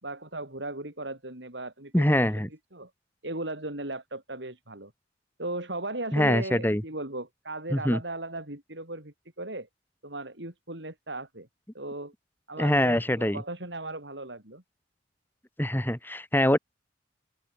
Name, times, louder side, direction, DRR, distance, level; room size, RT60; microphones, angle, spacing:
voice 1, 0.0-2.9 3.2-4.9 5.4-9.7 10.0-11.5 11.7-12.1 12.5-14.6, right 2 dB, 65° right, 5.1 m, -37 dB
voice 2, 1.9-2.5 6.1-6.8 7.7-8.0 12.6-13.4 15.6-16.6, left 1 dB, 10° left, 1.8 m, -24 dB
open air
head